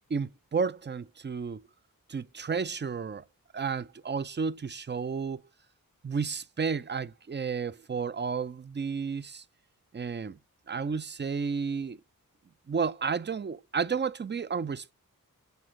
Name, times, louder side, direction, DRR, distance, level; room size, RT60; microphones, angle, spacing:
voice 1, 0.1-1.6 2.1-3.2 3.5-5.4 6.0-9.4 9.9-10.4 10.7-12.0 12.7-14.9, right 5 dB, 30° right, 0.5 m, -32 dB
7.0 x 6.1 x 3.7 m
wide cardioid pair, 45°, 34 cm